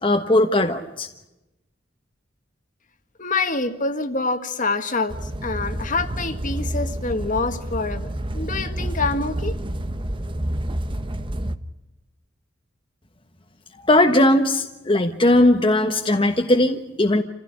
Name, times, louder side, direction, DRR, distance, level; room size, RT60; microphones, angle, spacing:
voice 1, 0.0-1.1 13.9-17.2, left 1 dB, 25° left, 3 dB, 1.3 m, -18 dB
voice 2, 3.2-8.1 8.3-9.6, left 3 dB, 45° left, 8 dB, 1.9 m, -26 dB
sound 1, 5.1-11.6, right 1 dB, 25° right, 1.1 m, -29 dB
28.5 x 16.0 x 10.0 m, 0.98 s
head